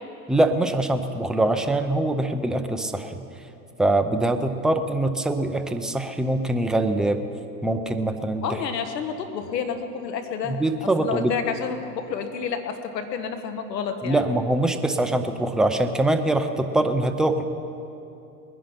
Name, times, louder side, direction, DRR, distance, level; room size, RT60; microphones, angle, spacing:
voice 1, 0.3-3.2 3.8-7.2 7.6-8.6 10.4-11.3 14.0-17.4, right 1 dB, ahead, 6 dB, 0.5 m, -23 dB
voice 2, 8.4-14.2, left 6 dB, 80° left, 7 dB, 1.6 m, -30 dB
21.0 x 10.5 x 5.8 m, 2.8 s
hypercardioid pair, 110°, 49 cm